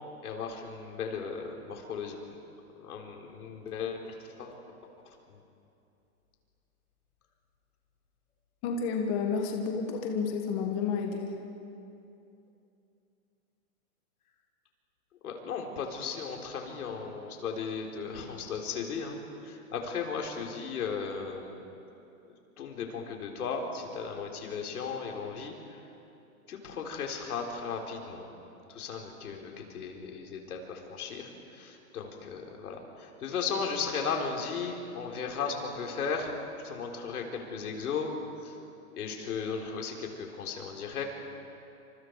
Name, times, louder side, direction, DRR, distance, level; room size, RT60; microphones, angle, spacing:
voice 1, 0.2-2.2 2.8-4.5 5.3-5.4 15.2-21.5 22.6-25.8 26.5-28.3 28.7-36.3 36.6-38.1 38.4-38.6 38.9-41.0, left 5 dB, 80° left, 1 dB, 4.2 m, -36 dB
voice 2, 8.6-11.4, left 5 dB, 30° left, 2 dB, 1.6 m, -30 dB
29.0 x 26.0 x 4.8 m, 2.7 s
hypercardioid pair, 155°, 44 cm